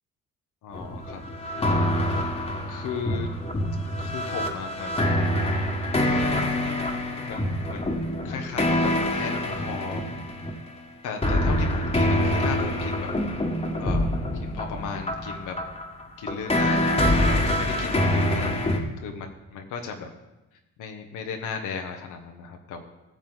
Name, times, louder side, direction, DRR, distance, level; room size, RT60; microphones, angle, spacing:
voice 1, 0.6-1.2 1.5-1.9 2.7-3.3 4.0-5.2 6.2-6.6 7.2-10.0 11.0-13.1 13.8-15.6 16.2-17.0 17.2-20.1 20.8-22.8, left 6 dB, 85° left, 3 dB, 1.2 m, -36 dB
sound 1, 0.7-10.5 11.2-18.8, left 1 dB, 20° left, 1.6 m, -25 dB
15.5 x 7.3 x 4.0 m, 1.0 s
cardioid pair, 90°, 30 cm